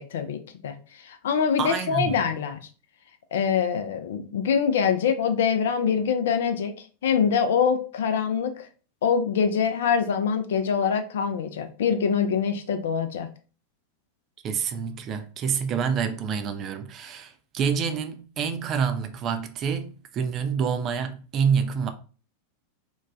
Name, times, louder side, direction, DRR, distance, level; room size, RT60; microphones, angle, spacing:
voice 1, 0.0-2.6 3.3-8.7 9.0-13.3, left 7 dB, 60° left, 0.3 m, -24 dB
voice 2, 1.6-2.2 14.4-21.9, right 6 dB, 30° right, 0.3 m, -27 dB
3.0 x 2.1 x 2.4 m
figure-of-eight pair, 90°, 0 cm